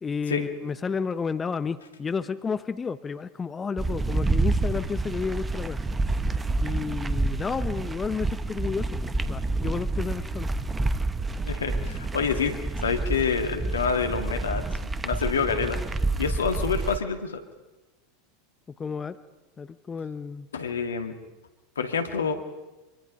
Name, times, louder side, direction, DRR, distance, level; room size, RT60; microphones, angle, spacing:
voice 1, 0.0-5.8 6.6-10.5 18.8-19.2 19.6-20.5, left 5 dB, 20° left, 13 dB, 0.9 m, -31 dB
sound 1, 3.8-17.0, right 2 dB, 15° right, 1.0 m, -28 dB
voice 2, 11.5-14.6 15.0-15.8 16.2-17.4 20.5-21.2 21.8-22.3, left 5 dB, 80° left, 7 dB, 2.1 m, -27 dB
25.0 x 24.0 x 5.4 m, 1.1 s
figure-of-eight pair, 85°, 0 cm